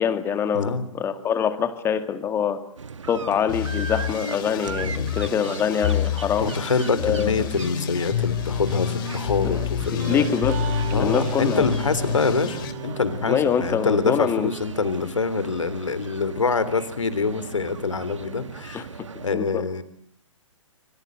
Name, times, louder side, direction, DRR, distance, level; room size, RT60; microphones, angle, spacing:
voice 1, 0.0-2.6 3.1-6.5 7.0-7.5 9.4-9.6 9.9-10.6 10.9-11.7 13.3-14.5 18.7-18.8 19.3-19.7, left 7 dB, 15° left, 10 dB, 2.2 m, -24 dB
voice 2, 0.5-0.9 4.8-5.1 6.4-10.3 10.9-18.9 19.2-19.8, left 4 dB, 70° left, 13 dB, 3.7 m, -25 dB
sound 1, 2.8-19.3, right 5 dB, 65° right, 1.6 m, -38 dB
sound 2, 3.5-12.7, left 9 dB, 40° left, 3.1 m, -28 dB
sound 3, 6.3-13.4, right 7 dB, 35° right, 4.2 m, -38 dB
26.0 x 25.0 x 8.1 m, 0.63 s
figure-of-eight pair, 125°, 17 cm